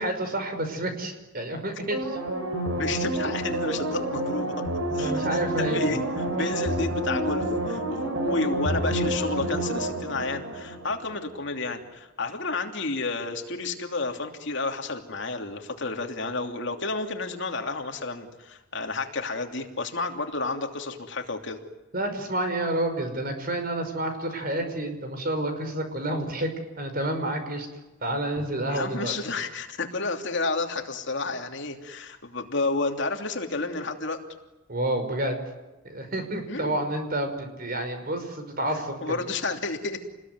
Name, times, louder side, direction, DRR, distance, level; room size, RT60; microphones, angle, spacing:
voice 1, 0.0-2.2 5.0-5.8 6.4-6.5 21.9-27.7 28.0-29.1 34.7-35.4 35.9-39.2, right 1 dB, 45° right, 7 dB, 5.4 m, -29 dB
sound 1, 1.9-11.3 11.6-11.7, right 1 dB, 70° right, 6.0 m, -29 dB
voice 2, 2.8-4.5 4.9-5.3 5.6-21.6 28.4-28.5 28.7-34.2 36.5-36.8 39.0-40.0, left 3 dB, 60° left, 4 dB, 3.0 m, -31 dB
29.0 x 20.5 x 9.6 m, 1.1 s
head